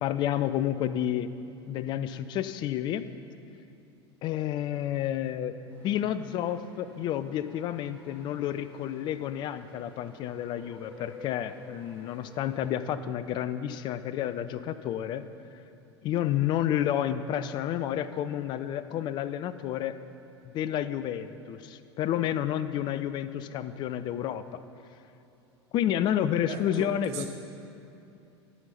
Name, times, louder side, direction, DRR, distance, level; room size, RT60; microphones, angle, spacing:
voice 1, 0.0-1.3 1.7-3.1 4.2-15.3 16.0-20.0 20.4-24.6 25.7-27.3, left 11 dB, 30° left, 13 dB, 0.4 m, -30 dB
sound 1, 5.7-12.8, equal, 10° left, 2.2 m, -53 dB
voice 2, 26.5-27.3, right 6 dB, 45° right, 3 dB, 1.1 m, -38 dB
12.5 x 5.2 x 5.7 m, 2.8 s
figure-of-eight pair, 80°, 15 cm